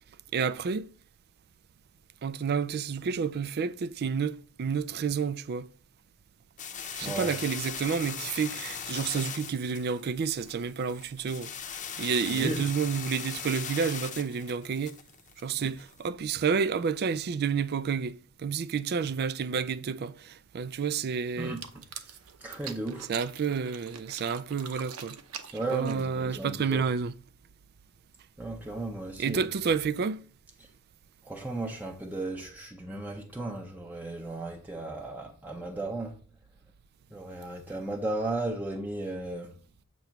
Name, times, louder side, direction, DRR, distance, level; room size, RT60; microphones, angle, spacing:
voice 1, 0.3-0.9 2.2-5.7 6.9-11.5 12.0-15.0 15.4-21.6 23.1-25.2 25.7-27.2 29.2-30.2, right 6 dB, 45° right, 0.4 m, -30 dB
sound 1, 6.6-16.0, left 7 dB, 35° left, 0.8 m, -39 dB
voice 2, 7.0-7.3 12.3-12.6 15.6-15.7 21.4-21.8 22.4-23.1 25.5-26.8 28.4-29.5 31.2-36.1 37.1-39.5, right 2 dB, 10° right, 0.7 m, -35 dB
sound 2, 21.4-26.3, right 7 dB, 85° right, 0.8 m, -44 dB
7.9 x 3.1 x 5.8 m
head